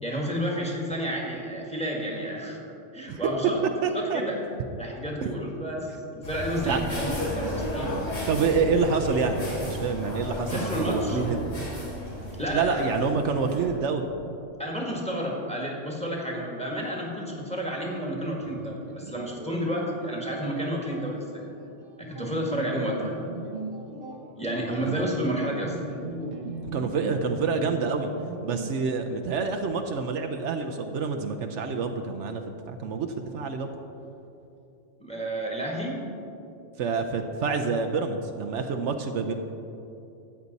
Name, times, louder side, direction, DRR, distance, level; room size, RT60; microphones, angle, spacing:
voice 1, 0.0-2.6 2.9-3.6 3.9-4.4 4.8-7.9 10.5-11.2 12.4-12.8 14.6-21.4 22.0-23.1 24.4-25.9 35.0-36.0, equal, 5° left, -1 dB, 1.5 m, -31 dB
voice 2, 3.8-4.2 5.2-5.3 6.6-6.8 8.3-9.4 9.7-11.4 12.5-14.1 24.5-25.0 26.7-28.1 28.4-33.7 36.8-39.3, right 5 dB, 75° right, 5 dB, 1.0 m, -27 dB
sound 1, 6.2-13.7, left 1 dB, 90° left, 3.0 m, -33 dB
sound 2, 18.3-28.7, right 3 dB, 50° right, 1.0 m, -39 dB
13.5 x 8.5 x 4.1 m, 2.8 s
omnidirectional pair, 1.3 m